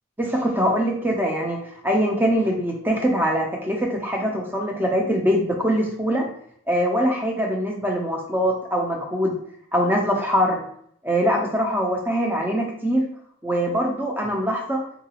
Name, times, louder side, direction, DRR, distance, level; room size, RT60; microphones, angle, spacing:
voice 1, 0.2-1.6 1.8-6.3 6.7-9.4 9.7-10.6 11.0-13.0 13.4-14.8, equal, 10° right, 0 dB, 0.4 m, -23 dB
3.8 x 2.3 x 2.9 m, 0.66 s
head